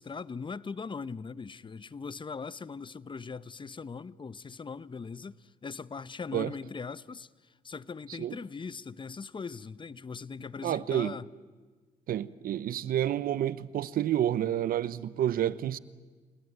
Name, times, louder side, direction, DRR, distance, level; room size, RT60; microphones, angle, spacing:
voice 1, 0.0-11.3, left 5 dB, 30° left, 0.9 m, -40 dB
voice 2, 10.6-11.1 12.1-15.8, right 11 dB, 70° right, 0.9 m, -29 dB
30.0 x 18.5 x 9.4 m
supercardioid pair, 65°, 15 cm